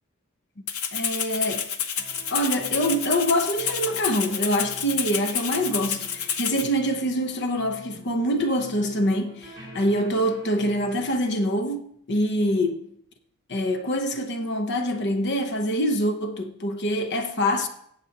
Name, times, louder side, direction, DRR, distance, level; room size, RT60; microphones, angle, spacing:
Rattle (instrument), 0.7-6.7, left 7 dB, 90° left, 1.0 m, -29 dB
voice 1, 0.9-1.7 2.3-12.9 13.5-17.7, equal, 55° left, 1.0 m, -25 dB
sound 1, 2.0-11.3, equal, 20° right, 4.7 m, -47 dB
19.5 x 7.8 x 3.0 m
head